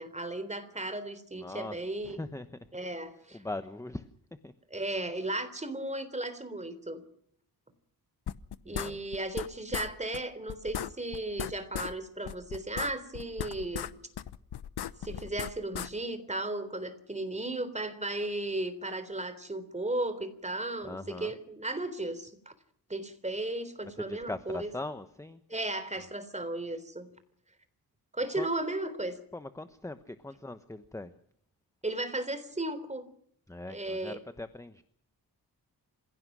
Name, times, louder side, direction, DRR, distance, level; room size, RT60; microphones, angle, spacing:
voice 1, 0.0-2.2 2.7-3.4 4.7-7.0 8.7-13.9 15.0-22.5 22.9-24.7 25.5-27.1 28.1-29.1 31.8-33.0 33.7-34.2, right 2 dB, 20° right, 11 dB, 3.6 m, -35 dB
voice 2, 1.4-1.8 2.0-2.5 3.3-4.0 4.4-4.5 8.6-9.0 20.8-21.3 24.0-25.4 28.4-28.5 29.3-31.1 33.5-34.8, left 2 dB, 10° left, 10 dB, 1.1 m, -40 dB
sound 1, 8.3-9.5 9.7-9.9 10.1-10.2 10.5-11.9 12.2-13.9 14.2-15.9, left 10 dB, 85° left, 1.0 m, -36 dB
27.5 x 16.5 x 6.2 m, 0.68 s
wide cardioid pair, 105°, 39 cm